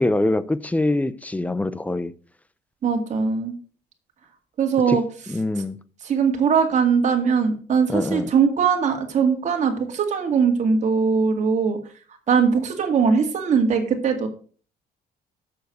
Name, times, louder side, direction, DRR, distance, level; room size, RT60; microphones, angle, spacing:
voice 1, 0.0-2.1 4.9-5.0 5.3-5.8 7.9-8.3, left 2 dB, 10° left, 0.5 m, -24 dB
voice 2, 2.8-3.5 4.6-5.0 6.0-11.8 12.3-14.3, right 6 dB, 45° right, 2.2 m, -20 dB
7.1 x 6.4 x 6.2 m
cardioid pair, 110°, 17 cm